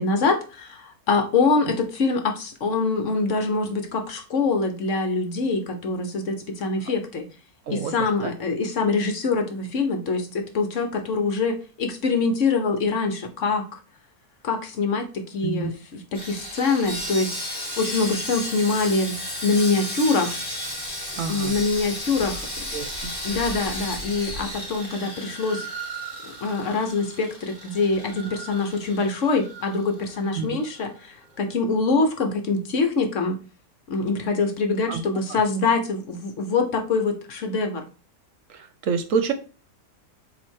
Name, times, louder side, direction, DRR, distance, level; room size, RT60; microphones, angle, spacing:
voice 1, 0.0-7.3 7.7-13.8 14.4-17.4 17.8-19.1 19.4-20.3 21.3-22.5 23.2-25.7 26.2-33.4 33.9-37.8, left 3 dB, 60° left, 1.2 m, -24 dB
Sawing, 16.1-30.4 30.6-30.8 31.3-31.4, equal, 30° left, 1.9 m, -34 dB
voice 2, 21.2-21.6 22.7-23.1 30.4-30.6 34.9-35.0 35.3-35.4 38.5-39.3, right 6 dB, 65° right, 1.0 m, -27 dB
7.5 x 2.9 x 4.5 m
omnidirectional pair, 1.6 m